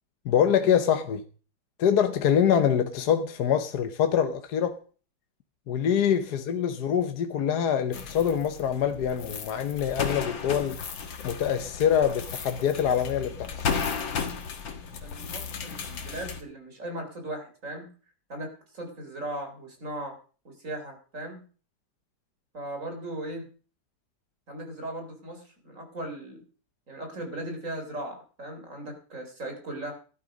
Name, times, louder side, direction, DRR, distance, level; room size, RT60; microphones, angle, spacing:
voice 1, 0.2-1.2 1.8-4.8 5.7-10.8 11.2-13.5, left 8 dB, 60° left, 1.4 m, -25 dB
sound 1, 7.9-16.4, left 6 dB, 75° left, 2.2 m, -34 dB
voice 2, 15.0-17.9 18.3-20.2 20.4-21.4 22.5-23.5 24.5-26.4 26.9-29.9, right 1 dB, 40° right, 4.1 m, -38 dB
14.5 x 11.5 x 5.2 m
omnidirectional pair, 2.1 m